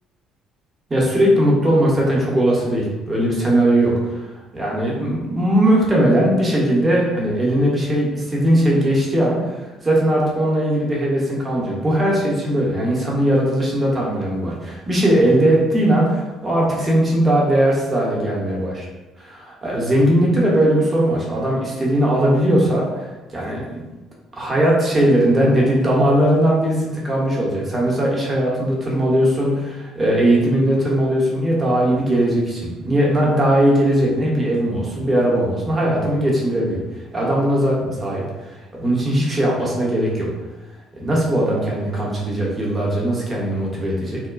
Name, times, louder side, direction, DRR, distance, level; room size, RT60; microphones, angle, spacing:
voice 1, 0.9-4.3 4.5-9.6 9.8-18.8 19.2-23.9 24.3-36.8 37.1-38.2 38.5-40.3 41.0-44.2, right 1 dB, 25° right, -3 dB, 0.8 m, -19 dB
2.9 x 2.2 x 2.4 m, 1.1 s
figure-of-eight pair, 50°, 0 cm